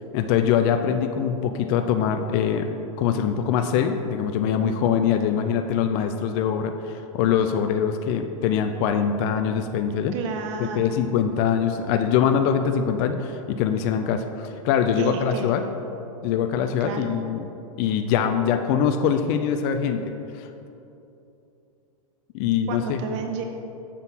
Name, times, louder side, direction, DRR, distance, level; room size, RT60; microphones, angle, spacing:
voice 1, 0.1-2.7 3.0-10.1 10.6-15.6 16.2-17.5 17.8-20.5 22.3-23.0, left 8 dB, 40° left, 6 dB, 0.4 m, -23 dB
voice 2, 10.1-10.9 15.0-15.8 16.8-17.1 22.7-23.4, right 5 dB, 50° right, 5 dB, 0.6 m, -31 dB
7.2 x 4.0 x 5.5 m, 2.9 s
hypercardioid pair, 125°, 18 cm